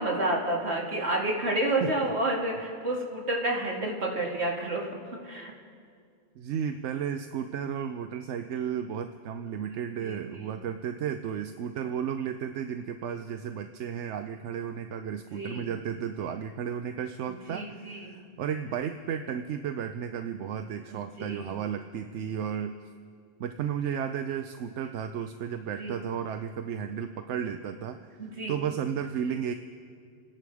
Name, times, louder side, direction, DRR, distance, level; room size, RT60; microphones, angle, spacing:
voice 1, 0.0-4.9 5.2-5.5 10.0-10.6 15.3-15.7 17.5-18.2 20.9-21.6 25.8-26.0 28.2-28.6, right 1 dB, 70° right, -2 dB, 2.6 m, -30 dB
voice 2, 1.8-2.1 6.4-22.7 23.4-28.1 28.5-29.5, right 8 dB, 90° right, 8 dB, 0.9 m, -33 dB
27.5 x 10.5 x 4.8 m, 2.2 s
omnidirectional pair, 1.2 m